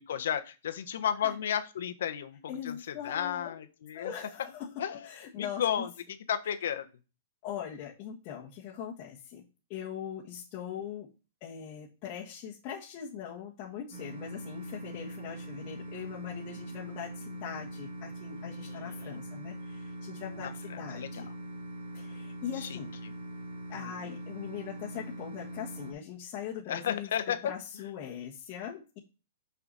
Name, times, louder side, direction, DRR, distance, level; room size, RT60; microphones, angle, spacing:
voice 1, 0.1-2.4 2.6-4.1 4.8-5.0 5.4-6.9 18.4-19.2 20.4-21.2 22.6-22.8 23.7-24.0 26.7-27.5, left 9 dB, 70° left, 8 dB, 1.1 m, -33 dB
voice 2, 2.5-3.6 3.9-5.8 7.4-9.4 9.7-11.1 11.4-21.3 21.9-22.9 23.7-29.0, left 9 dB, 35° left, -4 dB, 1.5 m, -41 dB
sound 1, 13.9-25.9, right 1 dB, 70° right, 2.8 m, -42 dB
6.0 x 5.9 x 4.1 m, 0.33 s
hypercardioid pair, 145°, 0 cm